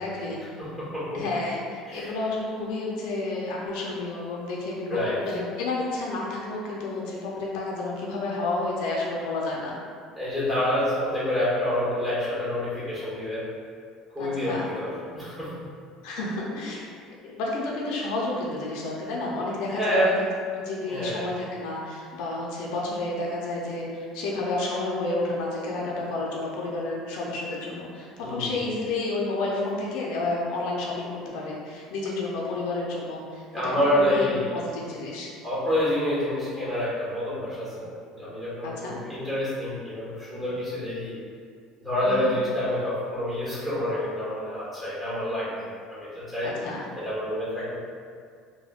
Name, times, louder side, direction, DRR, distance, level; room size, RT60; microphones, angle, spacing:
voice 1, 0.0-0.4 1.1-9.8 14.2-14.7 16.0-16.8 17.2-20.1 20.6-35.3 38.6-39.0 42.0-42.3 46.4-46.8, left 2 dB, 75° left, -3 dB, 0.5 m, -30 dB
voice 2, 0.6-1.2 1.9-2.1 4.9-5.3 10.2-13.5 14.1-15.7 19.7-20.2 20.9-21.3 28.2-28.5 33.5-34.5 35.4-41.2 41.8-46.5 47.0-47.8, left 1 dB, 10° right, -10 dB, 1.2 m, -28 dB
3.4 x 2.1 x 2.4 m, 2.1 s
cardioid pair, 135°, 0 cm